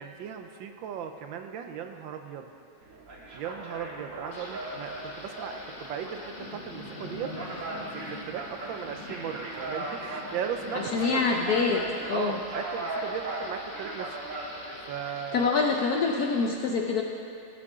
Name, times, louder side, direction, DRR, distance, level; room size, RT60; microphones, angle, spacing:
voice 1, 0.0-2.5 3.3-7.3 7.6-11.4 12.1-14.2 14.9-15.5, right 8 dB, 75° right, 6 dB, 1.3 m, -37 dB
sound 1, 2.8-14.9, right 2 dB, 40° right, 1.7 m, -39 dB
Thunder / Rain, 4.3-16.5, left 2 dB, 35° left, 0.8 m, -44 dB
voice 2, 10.7-12.4 15.3-17.0, left 4 dB, 65° left, 1 dB, 0.9 m, -26 dB
16.5 x 8.4 x 3.7 m, 2.6 s
omnidirectional pair, 2.3 m